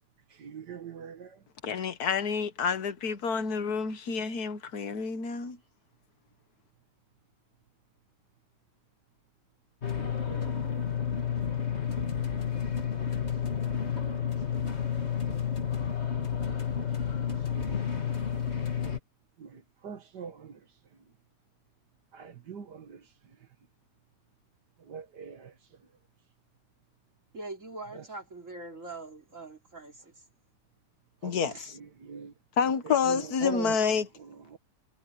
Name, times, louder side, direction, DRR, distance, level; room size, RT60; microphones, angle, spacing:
voice 1, 0.4-1.4 11.9-12.2 13.2-14.7 17.5-17.9 19.4-20.6 22.1-23.0 24.8-25.5 28.0-28.1 31.2-31.5 32.0-32.3 32.9-33.8 34.2-34.6, right 6 dB, 70° right, 2.3 m, -43 dB
voice 2, 1.6-5.6 31.2-31.7 32.6-34.1, left 6 dB, 60° left, 1.7 m, -28 dB
sound 1, 9.8-19.0, left 8 dB, 40° left, 2.6 m, -31 dB
voice 3, 27.3-30.2 31.4-31.7, right 2 dB, 45° right, 3.6 m, -43 dB
omnidirectional pair, 1.9 m